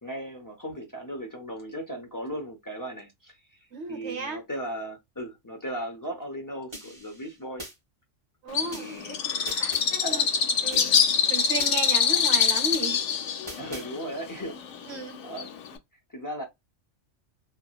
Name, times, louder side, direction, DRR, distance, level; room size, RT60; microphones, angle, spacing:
voice 1, 0.0-3.6 3.9-7.6 8.7-9.2 10.0-10.2 13.6-15.0 15.2-15.5 16.1-16.4, right 1 dB, 30° left, 0.3 m, -37 dB
voice 2, 3.7-4.4 8.4-10.3 10.6-11.0 11.3-13.0 14.9-15.2, right 3 dB, 60° right, 1.1 m, -35 dB
sound 1, 6.7-7.7 8.7-9.9 10.7-11.7 12.7-13.9, equal, 25° right, 1.0 m, -43 dB
Bird, 8.5-15.8, left 7 dB, 80° left, 0.9 m, -25 dB
2.9 x 2.2 x 2.3 m
omnidirectional pair, 1.3 m